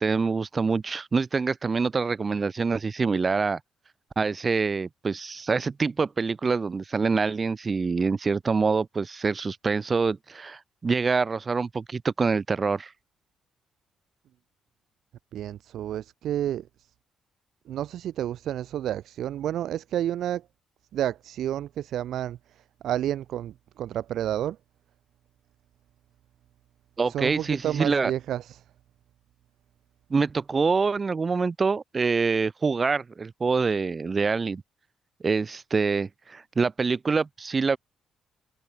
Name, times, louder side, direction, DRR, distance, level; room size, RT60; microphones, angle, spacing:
voice 1, 0.0-3.6 4.2-12.9 27.0-28.1 30.1-34.6 35.2-37.8, right 4 dB, 35° right, 0.9 m, -25 dB
voice 2, 15.3-16.7 17.7-20.4 20.9-22.4 22.8-24.6 27.1-28.6, right 11 dB, 75° right, 1.2 m, -30 dB
cardioid pair, 90°, 0 cm